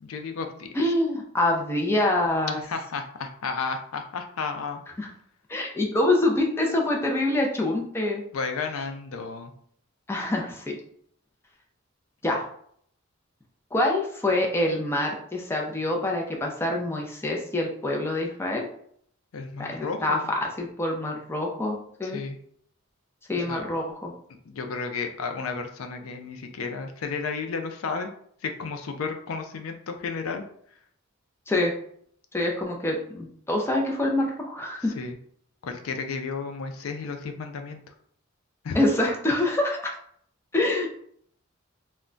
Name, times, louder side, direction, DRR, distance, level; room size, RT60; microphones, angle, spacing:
voice 1, 0.0-0.7 2.5-4.8 8.3-9.5 19.3-20.0 22.0-22.4 23.4-23.7 24.5-28.1 28.4-30.4 35.0-35.2 35.6-37.8 38.6-38.8, left 4 dB, 90° left, 5 dB, 0.4 m, -33 dB
voice 2, 0.7-2.6 5.0-5.1 5.5-8.2 10.1-10.8 12.2-12.4 13.7-18.7 19.6-22.2 23.3-24.1 31.5-31.7 32.3-34.9 38.7-39.9 40.5-40.9, left 1 dB, 10° left, 0 dB, 0.4 m, -25 dB
2.2 x 2.2 x 3.7 m, 0.64 s
head